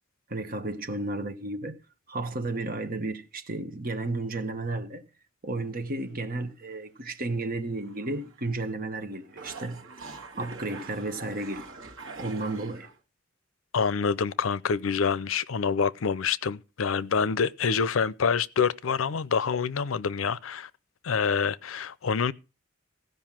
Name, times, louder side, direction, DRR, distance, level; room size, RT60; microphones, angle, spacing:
voice 1, 0.3-1.8 2.1-5.0 5.4-9.8 10.4-11.7 12.2-12.9, right 2 dB, 45° right, 1.4 m, -33 dB
sound 1, 5.5-6.1 6.7-6.8 7.8-8.7 9.0-13.0, right 4 dB, 75° right, 1.8 m, -44 dB
voice 2, 13.7-20.7 21.0-22.3, left 6 dB, 80° left, 0.6 m, -26 dB
16.0 x 5.3 x 7.4 m
head